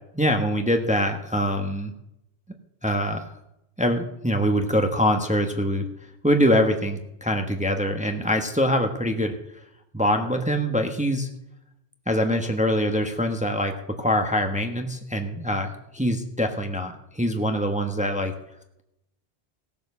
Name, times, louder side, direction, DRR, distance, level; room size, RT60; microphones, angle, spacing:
voice 1, 0.1-1.9 2.8-3.3 3.8-5.8 6.2-9.3 9.9-11.3 12.1-13.7 14.0-18.3, equal, 5° right, 5 dB, 1.1 m, -24 dB
17.5 x 7.0 x 6.9 m, 0.83 s
omnidirectional pair, 1.1 m